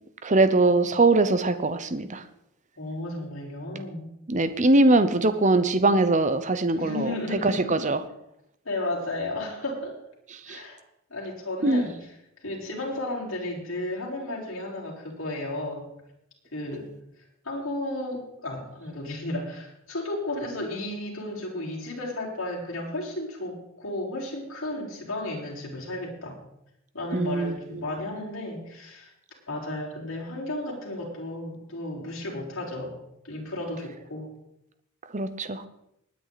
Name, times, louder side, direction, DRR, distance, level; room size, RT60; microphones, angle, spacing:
voice 1, 0.2-2.2 4.3-8.0 10.5-10.6 11.6-11.9 27.1-27.5 35.1-35.6, right 2 dB, 35° right, 11 dB, 0.8 m, -22 dB
voice 2, 2.8-4.1 6.7-7.7 8.6-10.0 10.4-10.8 11.1-11.9 12.4-15.9 16.5-16.9 17.4-26.4 26.9-29.1 29.5-32.9 33.2-34.3, left 1 dB, 65° left, -3 dB, 5.0 m, -33 dB
20.0 x 9.8 x 4.2 m, 0.80 s
head